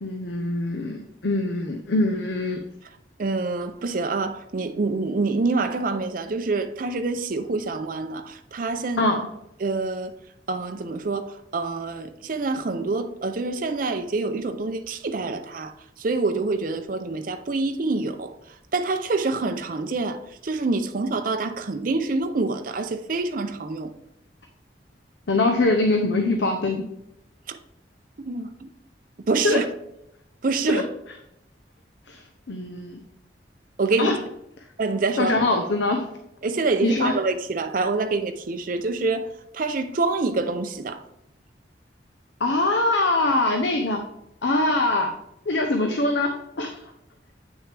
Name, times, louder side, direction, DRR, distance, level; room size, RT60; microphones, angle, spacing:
voice 1, 0.0-2.6 9.0-9.2 25.3-26.8 29.4-29.6 30.7-30.8 32.1-32.2 32.5-33.0 34.0-34.2 35.2-36.1 36.8-37.1 42.4-44.0 44.4-45.1 45.5-46.8, left 2 dB, 85° left, 0.7 m, -23 dB
voice 2, 3.2-9.0 9.6-10.1 10.5-15.7 16.0-18.3 18.7-23.9 27.5-27.6 28.2-28.7 29.3-29.6 30.4-30.8 33.8-34.2 34.8-35.4 36.4-39.3 39.5-41.0, right 3 dB, 50° right, 0.5 m, -26 dB
8.4 x 6.1 x 3.4 m
head